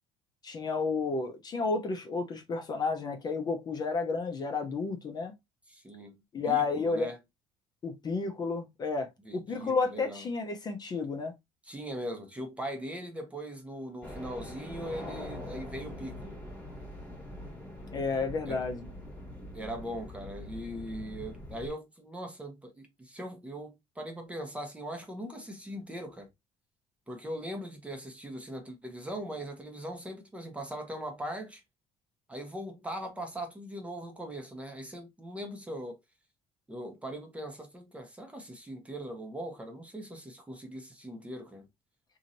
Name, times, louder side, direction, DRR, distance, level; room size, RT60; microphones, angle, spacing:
voice 1, 0.4-5.3 6.3-7.1 7.8-11.3 17.9-18.8, left 4 dB, 30° left, 0.7 m, -31 dB
voice 2, 5.7-6.2 6.5-7.2 9.3-10.3 11.7-16.4 18.5-18.6 19.5-26.3 27.1-31.6 32.3-36.0 36.7-41.7, equal, 10° right, 0.7 m, -40 dB
sound 1, 14.0-21.7, left 1 dB, 10° left, 1.2 m, -43 dB
2.9 x 2.8 x 2.5 m
cardioid pair, 130°, 13 cm